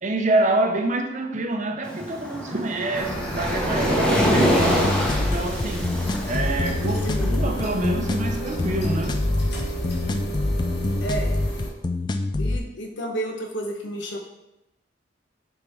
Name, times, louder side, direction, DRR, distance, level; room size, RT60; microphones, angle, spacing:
voice 1, 0.0-5.9 6.3-9.2, right 2 dB, 40° right, 0.7 m, -26 dB
Waves surf, 1.8-9.0, equal, 5° left, 0.8 m, -26 dB
sound 1, 2.9-11.7, right 1 dB, 60° left, 1.6 m, -32 dB
sound 2, 4.6-12.6, left 2 dB, 25° left, 0.3 m, -26 dB
voice 2, 7.0-7.5 11.0-11.4 12.4-14.2, right 1 dB, 75° left, 1.1 m, -31 dB
6.9 x 4.5 x 3.5 m
head